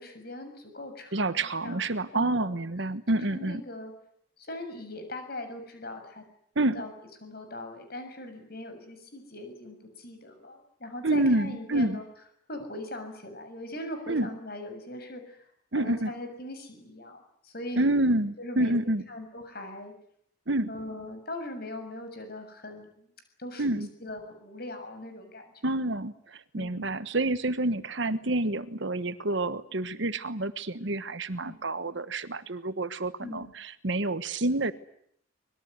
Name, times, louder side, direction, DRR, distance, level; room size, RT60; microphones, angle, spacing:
voice 1, 0.0-1.8 2.1-2.6 3.1-3.9 4.4-6.2 6.7-6.9 7.2-12.0 12.5-15.5 15.8-17.9 18.4-19.9 20.7-23.1 23.4-25.5 26.5-26.9 31.4-31.6 33.2-33.5, left 1 dB, 45° left, 7 dB, 6.9 m, -40 dB
voice 2, 1.1-3.6 6.5-6.8 11.0-12.0 14.1-14.3 15.7-16.1 17.8-19.0 20.5-20.7 23.6-23.9 25.6-34.7, right 2 dB, 60° right, 13 dB, 1.2 m, -28 dB
25.0 x 21.0 x 9.6 m, 0.70 s
head